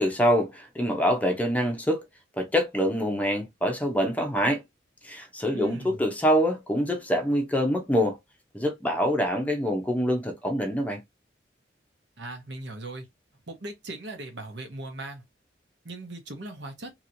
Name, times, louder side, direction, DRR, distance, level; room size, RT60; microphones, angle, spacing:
voice 1, 0.0-2.0 2.4-4.6 5.0-8.2 8.5-11.0, equal, 10° left, 0.6 m, -25 dB
voice 2, 5.5-6.0 12.2-13.0 13.5-15.2 15.8-16.9, right 2 dB, 75° right, 1.0 m, -39 dB
2.9 x 2.9 x 2.6 m
head